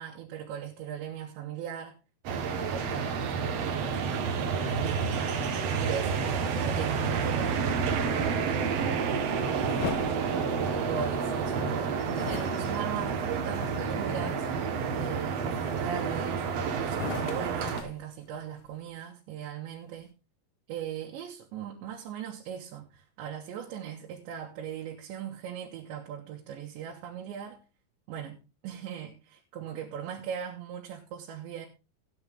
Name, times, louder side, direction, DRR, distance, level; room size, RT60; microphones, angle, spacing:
voice 1, 0.0-2.0 2.3-7.6 8.1-8.6 9.5-9.7 10.6-14.5 15.0-16.4 16.8-20.1 20.7-27.6 28.1-31.7, right 9 dB, 90° right, 3.8 m, -39 dB
sound 1, 2.2-17.8, right 5 dB, 65° right, 1.6 m, -29 dB
sound 2, 9.6-11.2 12.1-14.2 14.7-15.1 15.6-16.4 16.9-18.8, left 12 dB, 90° left, 3.0 m, -41 dB
14.5 x 9.7 x 3.6 m
omnidirectional pair, 5.0 m